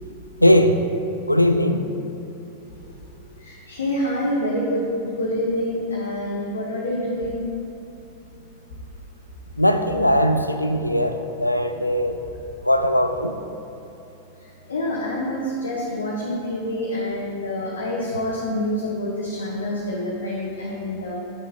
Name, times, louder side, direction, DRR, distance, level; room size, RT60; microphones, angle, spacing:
voice 1, 0.4-0.8 1.3-1.8 9.6-12.2 12.6-13.3, equal, 90° left, 8 dB, 0.4 m, -19 dB
voice 2, 3.4-7.5 14.7-21.1, left 1 dB, 70° left, -4 dB, 0.9 m, -27 dB
8.8 x 6.5 x 2.8 m, 2.9 s
figure-of-eight pair, 90°, 0 cm